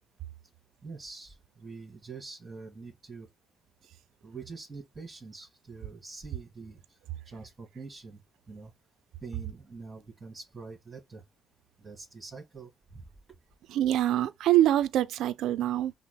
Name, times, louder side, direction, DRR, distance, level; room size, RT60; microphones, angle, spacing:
voice 1, 0.8-3.3 4.2-7.0 7.2-8.2 8.5-8.7 9.2-11.2 11.8-13.0, right 4 dB, 25° right, 1.9 m, -45 dB
voice 2, 13.7-15.9, right 13 dB, 85° right, 0.4 m, -25 dB
5.7 x 2.0 x 2.2 m
cardioid pair, 90°, 0 cm